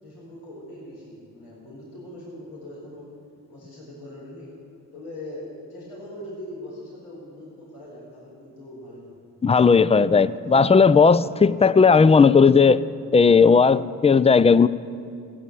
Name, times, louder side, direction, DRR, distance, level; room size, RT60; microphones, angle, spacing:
voice 1, 0.0-3.1 3.5-4.6 4.9-9.1, left 1 dB, 85° left, -7 dB, 4.5 m, -41 dB
voice 2, 9.4-12.8 13.1-14.7, left 5 dB, 15° left, 17 dB, 0.4 m, -15 dB
15.0 x 8.5 x 7.6 m, 2.4 s
supercardioid pair, 55°, 37 cm